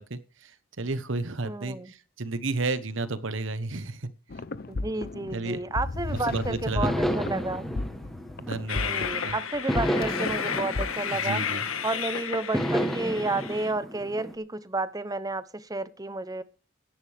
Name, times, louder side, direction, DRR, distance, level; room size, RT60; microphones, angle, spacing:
voice 1, 0.1-0.5 0.8-4.1 5.3-5.6 6.3-6.9 8.4-9.3 11.1-11.6, right 3 dB, 65° right, 12 dB, 1.1 m, -32 dB
voice 2, 1.4-1.9 4.7-7.7 8.7-11.4 11.8-16.4, right 2 dB, 20° right, 14 dB, 0.8 m, -31 dB
sound 1, 4.3-10.9, left 2 dB, 45° left, 0.7 m, -34 dB
sound 2, 6.8-9.1 9.7-11.9 12.5-14.3, equal, ahead, 1.2 m, -31 dB
Train, 8.7-13.7, left 7 dB, 85° left, 1.6 m, -32 dB
15.5 x 10.5 x 3.4 m, 0.34 s
head